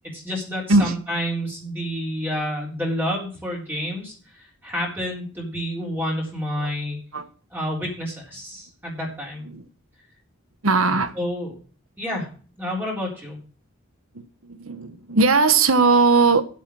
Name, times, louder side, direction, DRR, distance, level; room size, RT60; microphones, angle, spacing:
voice 1, 0.1-7.0 7.5-9.5 11.2-11.5 12.0-12.3 12.6-13.4, equal, 10° right, 3.9 m, -29 dB
voice 2, 10.6-11.1 14.1-16.4, right 3 dB, 80° right, 1.3 m, -19 dB
9.4 x 8.4 x 6.3 m
head